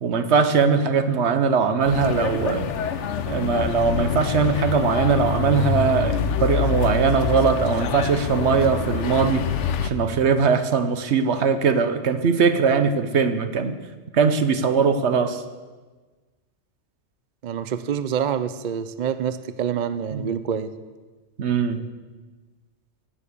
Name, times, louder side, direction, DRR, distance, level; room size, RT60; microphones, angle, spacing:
voice 1, 0.0-2.7 3.3-9.5 9.8-13.8 14.1-15.4 20.1-20.2 21.4-21.8, right 5 dB, 70° right, 9 dB, 1.2 m, -21 dB
sound 1, 1.9-9.9, left 7 dB, 80° left, 1.0 m, -26 dB
voice 2, 17.4-20.7, right 8 dB, 50° right, 12 dB, 0.6 m, -26 dB
17.0 x 7.1 x 6.8 m, 1.3 s
omnidirectional pair, 1.2 m